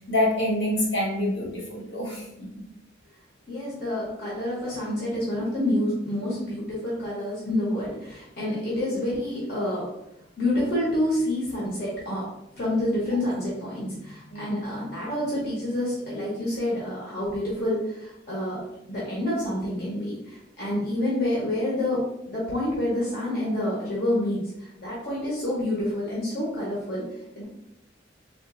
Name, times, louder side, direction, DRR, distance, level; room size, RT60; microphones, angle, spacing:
voice 1, 0.1-2.6 12.9-13.0 14.3-14.6, left 1 dB, 75° left, -3 dB, 1.2 m, -27 dB
voice 2, 3.5-9.8 10.4-12.2 12.5-18.6 18.9-24.4 24.8-27.0 27.4-27.5, left 1 dB, 55° left, -6 dB, 0.9 m, -28 dB
3.6 x 2.5 x 2.5 m, 0.84 s
head